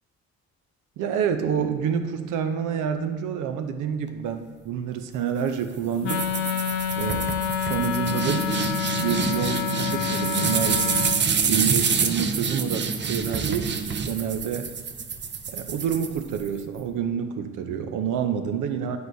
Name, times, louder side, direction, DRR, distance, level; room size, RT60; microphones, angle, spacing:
voice 1, 1.0-6.2 7.0-7.3 7.6-10.8 11.4-13.7 14.1-14.7 15.5-19.0, right 7 dB, 85° right, 7 dB, 0.7 m, -28 dB
Wind instrument woodwind instrument, 6.0-11.2, left 9 dB, 70° left, 0.6 m, -28 dB
sound 1, 6.1-16.6, right 6 dB, 40° right, 0.6 m, -27 dB
9.4 x 4.7 x 2.7 m, 1.5 s
cardioid pair, 90°, 30 cm